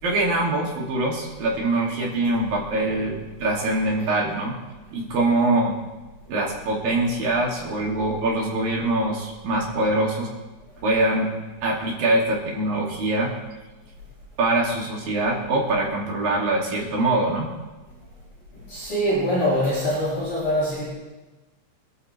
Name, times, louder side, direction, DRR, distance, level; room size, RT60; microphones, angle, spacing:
voice 1, 0.0-4.6 4.9-5.8 6.3-10.3 10.8-11.3 11.6-13.3 14.4-17.5, right 2 dB, 55° right, -2 dB, 4.0 m, -23 dB
voice 2, 18.5-20.9, equal, 40° left, -9 dB, 7.8 m, -24 dB
26.0 x 13.0 x 3.4 m, 1.2 s
omnidirectional pair, 5.2 m